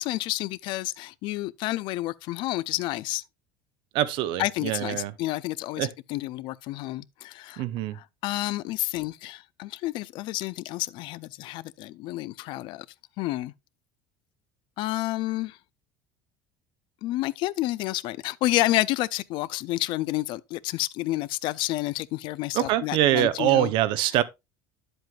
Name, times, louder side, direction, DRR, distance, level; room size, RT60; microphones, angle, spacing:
voice 1, 0.0-3.2 4.4-7.6 7.9-12.9 13.2-13.5 14.8-15.6 17.0-23.7, left 17 dB, 60° left, 0.4 m, -30 dB
voice 2, 3.9-5.1 5.8-5.9 7.6-8.0 22.5-24.2, right 13 dB, 65° right, 0.7 m, -24 dB
9.1 x 7.8 x 2.3 m
supercardioid pair, 115°, 9 cm